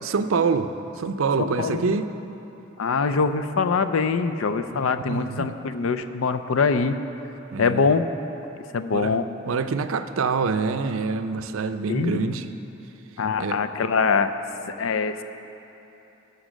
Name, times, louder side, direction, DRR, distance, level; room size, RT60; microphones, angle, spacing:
voice 1, 0.0-2.1 4.7-5.6 7.5-8.0 8.9-9.2 9.5-12.5 13.4-13.6, right 4 dB, 80° right, 10 dB, 0.5 m, -26 dB
voice 2, 1.4-2.0 2.8-7.0 7.6-8.1 8.7-9.3 11.9-12.3 13.2-14.3 14.8-15.2, left 5 dB, 85° left, 10 dB, 0.5 m, -23 dB
11.5 x 6.7 x 6.2 m, 3.0 s
head